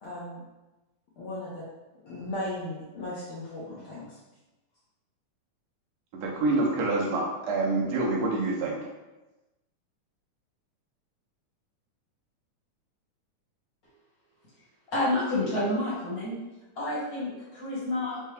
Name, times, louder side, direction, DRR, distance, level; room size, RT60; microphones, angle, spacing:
voice 1, 0.0-0.4 1.2-1.6 2.0-4.2, left 1 dB, 80° left, -8 dB, 1.2 m, -36 dB
voice 2, 6.1-8.8, right 2 dB, 70° right, -3 dB, 1.8 m, -27 dB
voice 3, 14.9-16.3 16.7-18.3, left 1 dB, 45° left, -8 dB, 1.2 m, -29 dB
5.5 x 2.2 x 3.3 m, 1.1 s
omnidirectional pair, 3.5 m